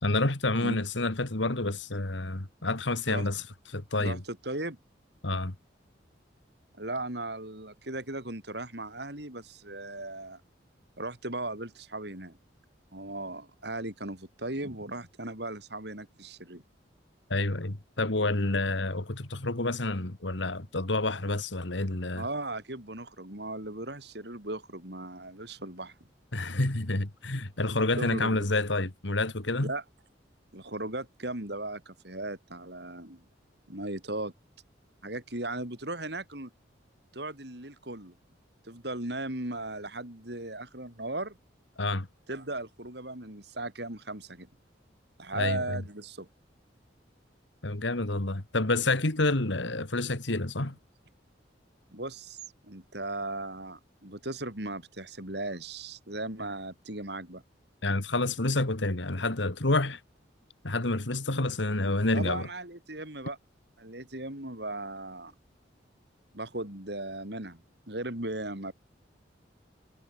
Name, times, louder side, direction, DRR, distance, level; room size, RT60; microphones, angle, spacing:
voice 1, 0.0-4.2 5.2-5.6 17.3-22.2 26.3-29.7 41.8-42.1 45.3-45.8 47.6-50.8 57.8-60.0 60.6-62.5, left 2 dB, 75° left, 2.2 m, -29 dB
voice 2, 4.0-4.8 6.8-10.4 11.0-12.4 12.9-16.6 22.2-25.9 28.0-28.3 29.6-29.8 30.5-33.2 33.7-34.3 35.0-36.5 37.1-38.1 38.6-41.4 42.3-44.5 45.2-46.3 51.9-57.4 62.1-63.4 63.8-65.3 66.3-67.6 67.9-68.7, right 2 dB, 60° right, 4.7 m, -37 dB
head